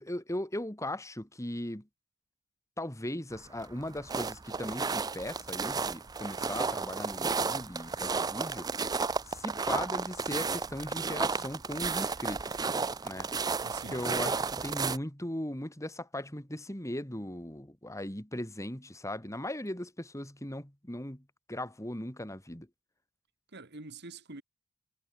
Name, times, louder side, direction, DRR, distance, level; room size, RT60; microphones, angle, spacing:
voice 1, 0.0-1.9 2.8-8.7 9.3-12.6 13.0-13.3 13.9-22.7, left 1 dB, 15° left, 2.8 m, -38 dB
sound 1, 3.3-15.0, right 4 dB, 20° right, 0.4 m, -33 dB
voice 2, 13.4-14.0 23.5-24.4, right 3 dB, 50° right, 2.3 m, -46 dB
head